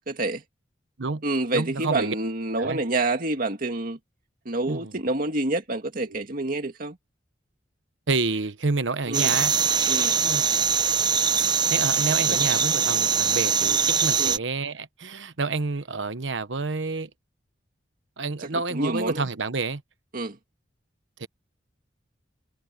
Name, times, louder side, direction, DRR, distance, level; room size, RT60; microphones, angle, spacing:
voice 1, 0.1-0.4 1.2-4.0 4.5-7.0 9.1-9.3 9.9-10.2 12.3-12.4 14.2-14.4 18.7-19.2 20.1-20.4, right 2 dB, 50° right, 2.1 m, -27 dB
voice 2, 1.5-2.1 2.6-2.8 4.7-4.9 6.0-6.3 8.1-9.5 10.2-10.6 11.7-17.1 18.2-19.8 21.2-21.3, right 3 dB, 80° right, 1.1 m, -29 dB
sound 1, 9.1-14.4, right 6 dB, 25° right, 1.1 m, -22 dB
head